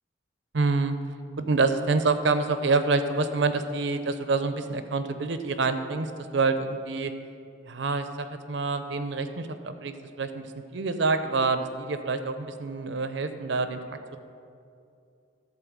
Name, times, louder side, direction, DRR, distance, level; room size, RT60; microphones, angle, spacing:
voice 1, 0.5-1.0 1.5-7.1 7.7-13.8, right 3 dB, 60° right, 9 dB, 0.6 m, -27 dB
12.5 x 4.3 x 7.3 m, 2.5 s
head